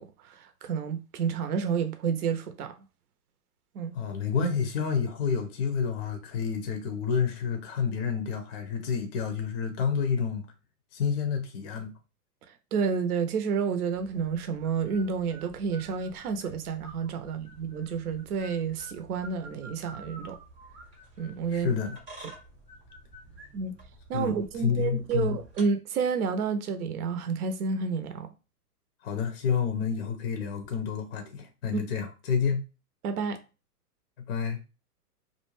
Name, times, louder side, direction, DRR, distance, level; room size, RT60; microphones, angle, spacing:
voice 1, 0.0-2.8 3.7-4.0 12.7-20.4 21.2-21.7 23.5-23.7 24.1-28.3 31.7-31.8 33.0-33.4, right 5 dB, 70° right, 0.6 m, -30 dB
voice 2, 3.9-10.5 10.9-11.9 21.5-22.3 24.1-24.3 24.6-25.4 29.0-32.7 34.3-34.6, left 6 dB, 40° left, 0.5 m, -29 dB
sound 1, 13.9-25.6, right 2 dB, 10° right, 0.3 m, -50 dB
2.5 x 2.1 x 3.0 m
hypercardioid pair, 120°, 47 cm